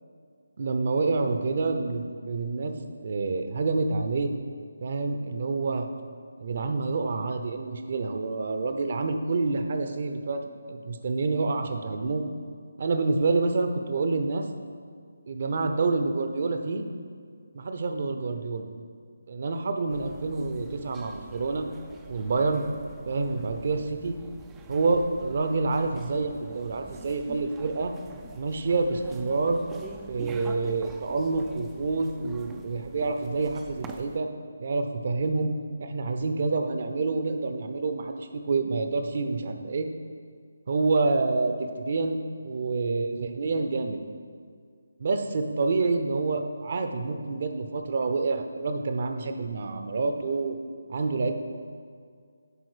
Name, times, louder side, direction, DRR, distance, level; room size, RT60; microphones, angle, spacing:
voice 1, 0.6-2.7 3.0-4.3 4.8-5.9 6.4-10.4 10.7-12.2 12.8-14.4 15.3-16.8 17.5-18.7 19.3-21.7 22.1-22.6 23.1-24.2 24.7-27.9 28.3-29.7 30.1-34.3 34.6-39.9 40.7-42.2 42.4-44.0 45.0-50.6 50.9-51.4, right 3 dB, 45° right, 6 dB, 0.7 m, -27 dB
sound 1, 19.9-34.2, right 5 dB, 10° right, 0.3 m, -46 dB
10.0 x 3.9 x 4.9 m, 2.1 s
figure-of-eight pair, 150°, 0 cm